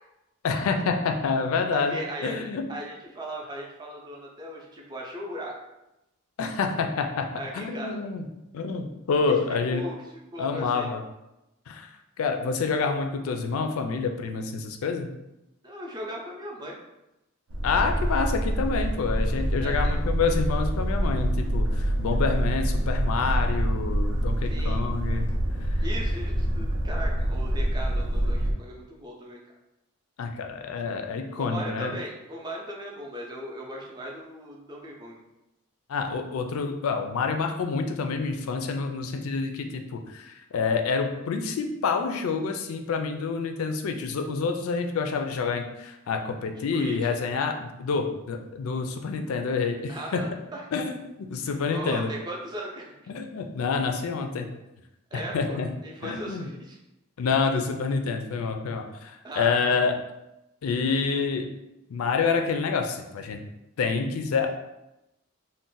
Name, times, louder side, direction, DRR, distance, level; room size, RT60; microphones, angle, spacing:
voice 1, 0.4-2.0 2.2-2.6 6.4-8.2 8.5-9.8 10.4-11.0 11.7-11.9 12.2-15.1 17.6-25.3 25.6-25.7 30.2-31.9 35.9-50.2 50.7-52.1 53.1-54.5 55.1-55.7 56.0-56.5 57.2-59.9 60.6-61.5 61.9-63.4 63.8-64.5, left 5 dB, 80° left, 5 dB, 0.4 m, -28 dB
voice 2, 1.7-5.5 7.3-8.0 9.7-9.9 10.3-10.9 15.6-16.7 19.6-20.0 24.5-24.9 25.8-29.4 31.4-35.2 46.5-47.1 49.9-50.6 51.4-53.1 55.1-56.8 59.2-59.8, equal, 20° right, -2 dB, 0.5 m, -38 dB
Boat Water vehicle, 17.5-28.5, right 1 dB, 90° right, 0.5 m, -26 dB
2.5 x 2.1 x 3.8 m, 0.92 s
head